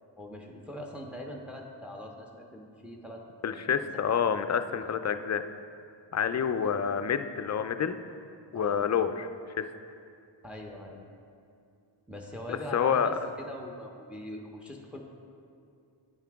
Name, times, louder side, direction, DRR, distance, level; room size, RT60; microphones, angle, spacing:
voice 1, 0.2-4.0 4.7-5.0 6.5-6.7 8.5-8.9 10.4-11.0 12.1-15.0, left 1 dB, 5° right, 1 dB, 0.8 m, -42 dB
voice 2, 3.4-5.4 6.1-8.0 8.5-9.3 9.6-9.7 12.5-13.1, left 7 dB, 40° left, 10 dB, 0.4 m, -28 dB
9.1 x 5.7 x 3.5 m, 2.4 s
wide cardioid pair, 60°, 46 cm